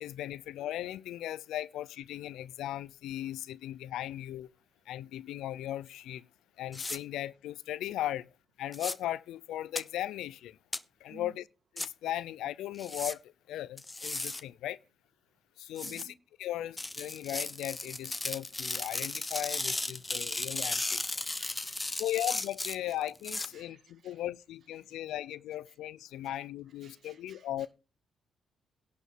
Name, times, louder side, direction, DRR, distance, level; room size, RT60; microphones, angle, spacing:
voice 1, 0.0-4.5 4.9-6.2 6.6-8.2 8.6-10.6 11.0-11.4 11.8-13.2 13.5-14.8 15.6-16.1 16.4-21.0 22.0-27.7, left 13 dB, 85° left, 0.6 m, -37 dB
sound 1, 6.7-7.0 8.7-8.9 9.8-9.9 10.7-10.8 11.8-11.9 12.8-13.1 13.8-14.4 15.8-16.0 16.8-23.5, left 2 dB, 15° left, 0.9 m, -35 dB
voice 2, 15.8-16.1 17.1-17.2 20.1-20.4 20.8-20.9 21.4-22.2 22.7-23.0 23.4-24.3 24.6-25.2 25.5-25.8 26.2-27.7, right 6 dB, 55° right, 2.1 m, -58 dB
11.0 x 5.2 x 7.9 m
cardioid pair, 90°, 0 cm